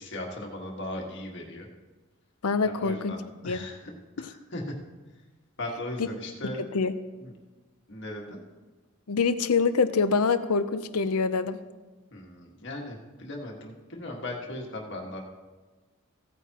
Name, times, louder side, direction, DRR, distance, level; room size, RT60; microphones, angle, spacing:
voice 1, 0.0-1.7 2.6-3.9 4.2-4.6 5.6-6.6 7.2-7.3 7.9-8.4 12.1-15.2, left 1 dB, 55° left, 0 dB, 1.7 m, -38 dB
voice 2, 2.4-3.1 3.4-3.7 4.2-4.3 6.0-6.1 6.4-6.9 9.1-11.6, left 4 dB, 80° left, 12 dB, 0.6 m, -25 dB
16.5 x 9.2 x 2.9 m, 1.3 s
head